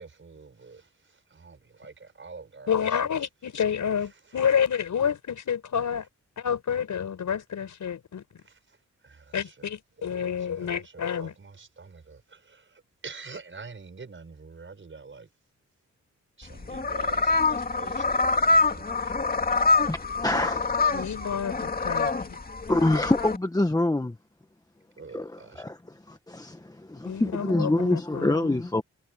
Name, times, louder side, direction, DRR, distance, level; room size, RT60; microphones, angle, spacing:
voice 1, 0.0-3.0 8.5-8.6 9.0-10.8 11.2-15.3 16.4-19.5 25.0-25.6, right 4 dB, 40° right, 5.9 m, -46 dB
voice 2, 2.7-6.1 6.4-8.2 9.3-11.3 20.9-22.4 27.0-28.6, left 8 dB, 75° left, 6.3 m, -29 dB
sound 1, 16.4-23.4, left 3 dB, 30° left, 2.7 m, -25 dB
voice 3, 19.9-21.0 22.7-24.2 25.1-28.8, left 2 dB, 10° left, 1.4 m, -26 dB
cardioid pair, 85°, 30 cm